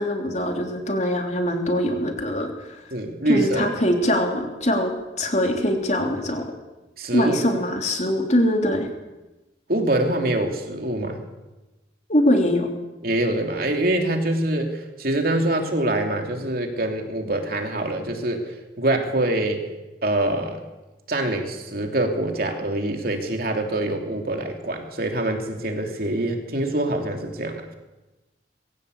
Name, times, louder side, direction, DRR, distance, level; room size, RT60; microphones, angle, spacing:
voice 1, 0.0-2.8 3.3-4.9 5.2-6.5 7.1-8.9 12.1-12.7, left 1 dB, 40° left, 3 dB, 3.3 m, -22 dB
voice 2, 2.9-3.7 7.0-7.4 9.7-11.2 13.0-19.7 20.0-20.6 21.1-27.7, right 1 dB, 55° right, 3 dB, 3.2 m, -25 dB
22.0 x 16.5 x 8.4 m, 1.1 s
head